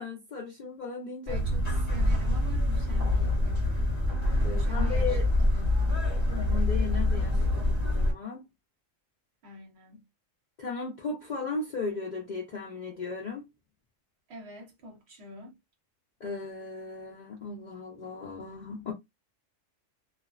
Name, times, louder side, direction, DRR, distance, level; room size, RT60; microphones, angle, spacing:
voice 1, 0.0-1.4 4.4-5.2 6.3-8.5 10.6-13.5 16.2-18.9, left 4 dB, 55° left, 0.5 m, -36 dB
sound 1, 1.3-8.1, left 1 dB, 30° right, 1.3 m, -26 dB
voice 2, 1.3-3.8 4.5-6.0 7.5-8.0 9.4-10.1 14.3-15.6, equal, 60° right, 1.0 m, -46 dB
2.5 x 2.1 x 2.3 m
omnidirectional pair, 1.3 m